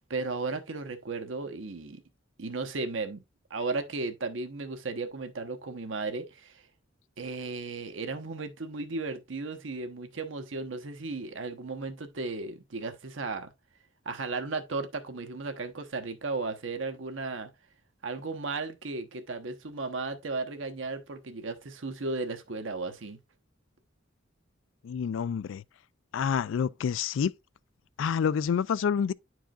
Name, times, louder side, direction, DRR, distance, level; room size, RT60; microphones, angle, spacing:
voice 1, 0.1-2.0 2.4-3.2 3.5-6.5 7.2-13.5 14.0-17.5 18.0-23.2, right 3 dB, 75° right, 1.0 m, -35 dB
voice 2, 24.8-25.6 26.1-27.3 28.0-29.1, left 7 dB, 75° left, 0.3 m, -28 dB
10.0 x 4.7 x 2.4 m
head